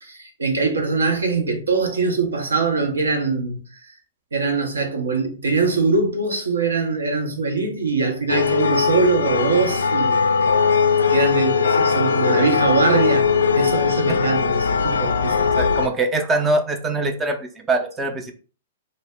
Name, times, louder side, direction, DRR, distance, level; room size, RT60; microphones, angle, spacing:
voice 1, 0.0-4.0 4.3-10.2 10.8-15.5, right 4 dB, 75° right, 0.7 m, -22 dB
sound 1, 8.3-15.9, left 5 dB, 70° left, 0.3 m, -19 dB
voice 2, 15.6-18.3, right 2 dB, 15° right, 0.5 m, -23 dB
2.0 x 2.0 x 3.3 m
figure-of-eight pair, 110°, 0 cm